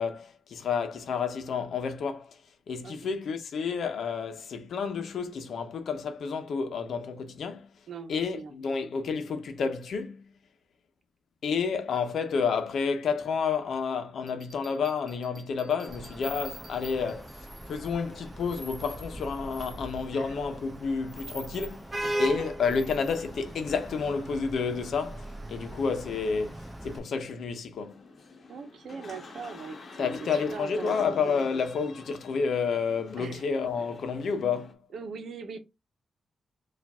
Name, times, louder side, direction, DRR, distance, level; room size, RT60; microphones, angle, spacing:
voice 1, 0.0-2.4 2.7-7.7 8.1-10.3 11.4-21.9 22.2-28.0 30.0-34.8, left 5 dB, 80° left, 0.8 m, -30 dB
voice 2, 7.9-8.5 20.1-20.3 22.0-22.3 28.5-31.2 33.2-33.5 34.9-35.6, right 5 dB, 75° right, 0.9 m, -41 dB
Bell, 14.3-17.6, right 1 dB, 35° right, 1.2 m, -55 dB
Vehicle horn car horn honking / Traffic noise roadway noise, 15.9-27.0, right 1 dB, 10° right, 1.2 m, -38 dB
sound 1, 27.8-34.7, left 3 dB, 50° left, 0.9 m, -47 dB
4.7 x 2.5 x 3.5 m
wide cardioid pair, 125°, 0 cm